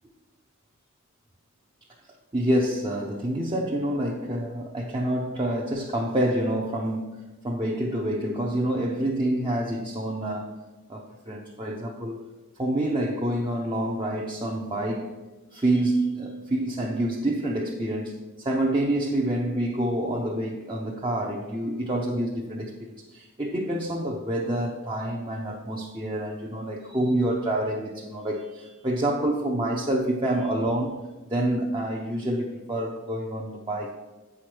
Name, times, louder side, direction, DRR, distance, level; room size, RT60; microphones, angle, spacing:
voice 1, 2.3-10.6 10.9-12.3 12.6-15.2 15.5-31.0 31.3-33.9, right 1 dB, 25° right, 0.7 m, -27 dB
8.6 x 5.0 x 6.0 m
head